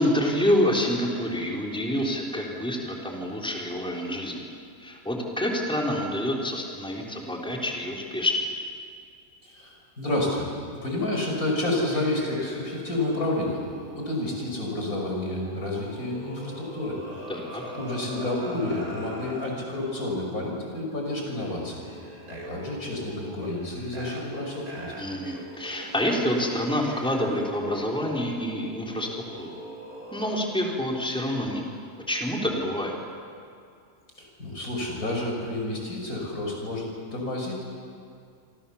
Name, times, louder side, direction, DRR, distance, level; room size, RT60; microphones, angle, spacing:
voice 1, 0.0-4.5 4.8-8.5 17.3-17.6 25.0-29.1 29.4-29.5 30.1-31.6 32.1-32.9, left 1 dB, 5° left, -1 dB, 3.6 m, -27 dB
voice 2, 9.4-10.5 10.8-13.6 14.0-17.3 17.7-21.8 22.3-24.9 34.2-37.6, left 2 dB, 85° left, 0 dB, 6.5 m, -30 dB
sound 1, 11.9-19.5 20.4-20.6 21.3-30.4, right 1 dB, 85° right, 4.7 m, -42 dB
28.0 x 26.0 x 7.1 m, 2.4 s
omnidirectional pair, 1.5 m